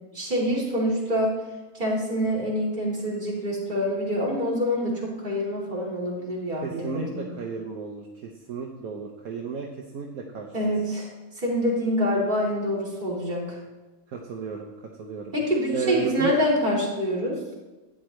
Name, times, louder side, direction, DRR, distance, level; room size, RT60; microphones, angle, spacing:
voice 1, 0.1-1.4 1.7-7.2 10.5-11.1 11.4-13.4 15.3-17.4, equal, 30° right, -6 dB, 3.4 m, -26 dB
voice 2, 6.6-9.7 9.9-10.7 14.1-14.7 15.0-15.3 15.7-16.4, right 6 dB, 70° right, 1 dB, 1.3 m, -33 dB
12.5 x 9.3 x 3.2 m, 1.1 s
omnidirectional pair, 1.6 m